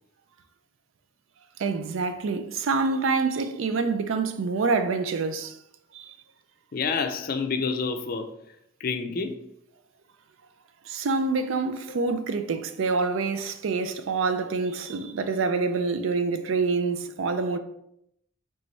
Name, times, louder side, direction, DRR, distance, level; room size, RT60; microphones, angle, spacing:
voice 1, 1.6-5.6 5.9-6.1 10.9-17.6, right 4 dB, 75° right, 0.4 m, -26 dB
voice 2, 6.7-8.3 8.8-9.4 12.1-12.2, left 5 dB, 45° left, 0.4 m, -28 dB
4.0 x 3.4 x 3.2 m
head